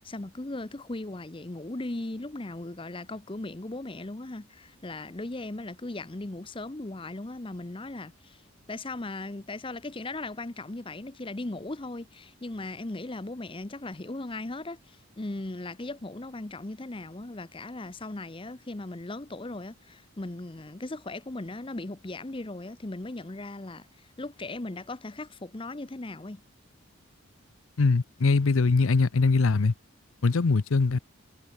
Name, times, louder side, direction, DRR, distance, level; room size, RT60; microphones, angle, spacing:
voice 1, 0.0-8.4 8.7-26.4, left 2 dB, 25° left, 0.7 m, -38 dB
voice 2, 27.8-29.7 30.2-31.0, left 4 dB, 70° left, 0.6 m, -22 dB
head